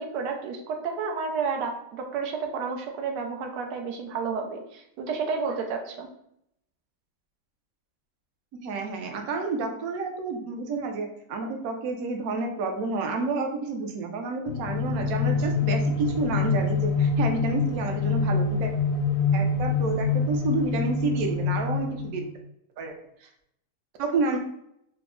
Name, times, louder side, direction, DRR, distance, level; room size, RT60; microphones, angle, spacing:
voice 1, 0.0-6.1, right 5 dB, 90° right, 2 dB, 1.2 m, -31 dB
voice 2, 8.6-18.7 19.3-22.3 22.8-22.9 23.2-23.3 24.0-24.4, right 3 dB, 70° right, 3 dB, 0.9 m, -30 dB
sound 1, 14.5-22.4, left 4 dB, 70° left, 0.9 m, -26 dB
3.4 x 2.0 x 3.6 m, 0.75 s
omnidirectional pair, 1.8 m